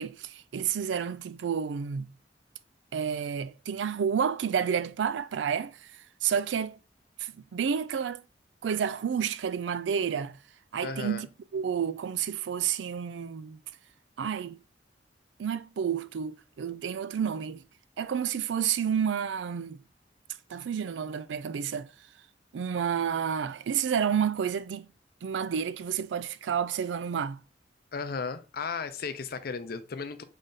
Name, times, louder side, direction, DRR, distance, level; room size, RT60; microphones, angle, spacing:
voice 1, 0.0-2.1 2.9-5.9 6.2-6.8 7.2-8.2 8.6-10.4 10.7-11.3 11.5-13.6 14.2-14.6 15.4-17.6 18.0-19.8 20.5-21.9 22.5-24.9 25.2-27.4, right 7 dB, 85° right, 0.4 m, -30 dB
voice 2, 10.8-11.2 27.9-30.2, left 5 dB, 55° left, 0.5 m, -35 dB
3.8 x 3.3 x 3.9 m
head